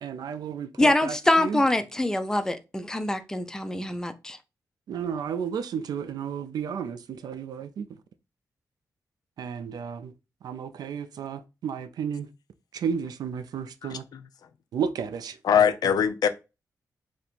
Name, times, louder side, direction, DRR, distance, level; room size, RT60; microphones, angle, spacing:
voice 1, 0.0-1.6 4.9-7.9 9.4-10.1 10.4-12.3 12.7-14.0 14.7-15.4, right 7 dB, 80° right, 0.4 m, -32 dB
voice 2, 0.8-4.4, left 1 dB, 10° left, 0.4 m, -24 dB
voice 3, 13.8-14.2 15.4-16.3, left 8 dB, 75° left, 0.4 m, -22 dB
2.9 x 2.6 x 4.2 m
wide cardioid pair, 150°, 7 cm